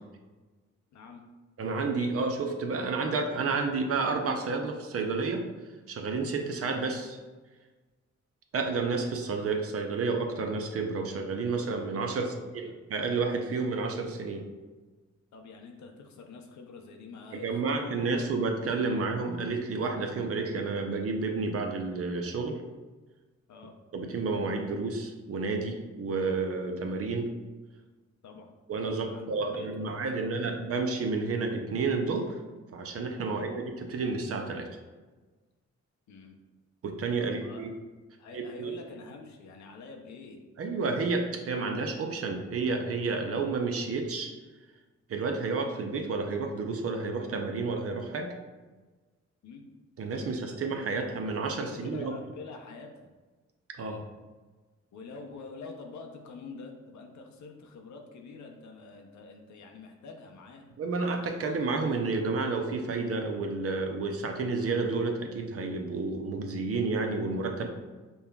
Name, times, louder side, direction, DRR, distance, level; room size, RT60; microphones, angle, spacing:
voice 1, 0.9-1.2 12.1-12.7 15.3-18.2 18.9-19.0 23.5-23.7 28.2-28.5 28.9-30.6 33.2-33.5 36.1-36.4 37.2-37.7 38.2-40.4 49.4-49.6 50.1-51.0 51.5-52.9 54.9-60.7, left 4 dB, 70° left, 3 dB, 0.6 m, -46 dB
voice 2, 1.6-5.4 5.9-7.2 8.5-14.4 17.3-22.6 23.9-27.3 28.7-32.4 32.7-34.7 36.8-37.7 38.3-38.8 40.6-44.3 45.1-48.3 50.0-52.1 53.8-54.0 60.8-67.7, right 4 dB, 50° right, 3 dB, 0.6 m, -30 dB
5.3 x 2.2 x 2.3 m, 1.3 s
cardioid pair, 70°, 30 cm